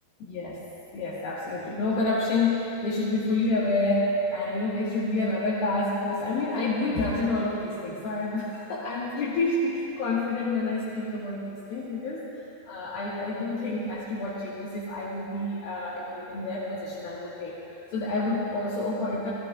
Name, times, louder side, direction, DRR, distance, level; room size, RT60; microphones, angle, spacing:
voice 1, 0.2-0.6 0.9-12.3 12.7-19.3, left 2 dB, 75° left, -8 dB, 3.5 m, -28 dB
28.5 x 15.0 x 2.4 m, 2.7 s
omnidirectional pair, 4.4 m